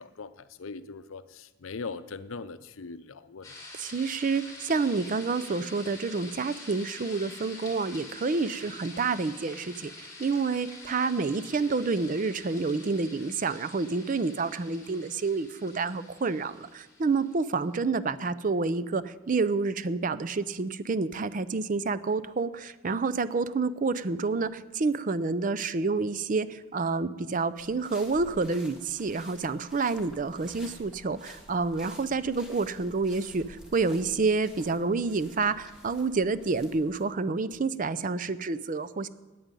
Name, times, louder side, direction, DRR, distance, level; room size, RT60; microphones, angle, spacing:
voice 1, 0.0-3.6, left 4 dB, 75° left, 13 dB, 0.6 m, -40 dB
sound 1, 3.4-17.5, left 2 dB, 15° left, 2.9 m, -47 dB
voice 2, 3.8-39.1, right 4 dB, 40° right, 15 dB, 0.4 m, -29 dB
sound 2, 27.6-37.0, left 1 dB, 5° right, 1.7 m, -51 dB
9.4 x 9.1 x 8.9 m, 1.2 s
head